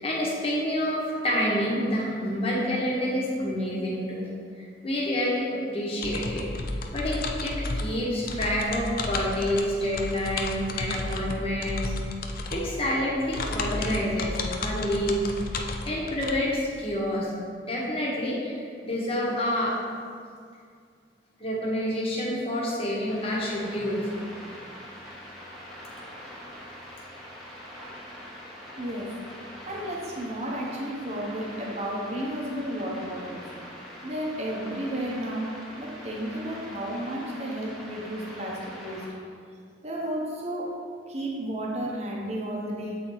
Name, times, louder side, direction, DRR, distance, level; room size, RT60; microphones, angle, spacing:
voice 1, 0.0-4.3 4.6-6.5 6.9-11.9 12.5-15.2 15.6-17.3 17.6-19.7 21.4-24.0, equal, 35° left, -4 dB, 1.3 m, -28 dB
sound 1, 6.0-16.3, left 2 dB, 50° left, 0.5 m, -33 dB
sound 2, 23.1-39.1, equal, ahead, 1.2 m, -43 dB
voice 2, 28.8-29.1 29.7-33.4 34.0-39.0 39.8-40.8 41.1-43.0, right 1 dB, 35° right, -3 dB, 0.9 m, -32 dB
8.0 x 4.2 x 3.9 m, 2.2 s
head